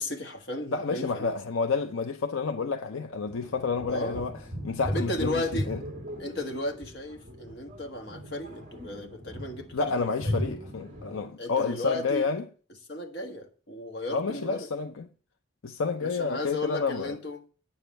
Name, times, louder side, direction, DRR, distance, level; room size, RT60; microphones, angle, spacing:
voice 1, 0.0-1.4 3.9-4.2 4.9-5.7 6.2-10.5 11.4-12.3 12.9-14.7 16.0-17.4, left 1 dB, 50° left, 1.6 m, -35 dB
voice 2, 0.7-4.3 4.6-5.8 9.7-12.4 14.1-15.1 15.6-17.2, left 4 dB, 75° left, 0.6 m, -29 dB
sound 1, 3.3-11.3, equal, 35° right, 1.9 m, -37 dB
8.9 x 7.2 x 4.5 m
head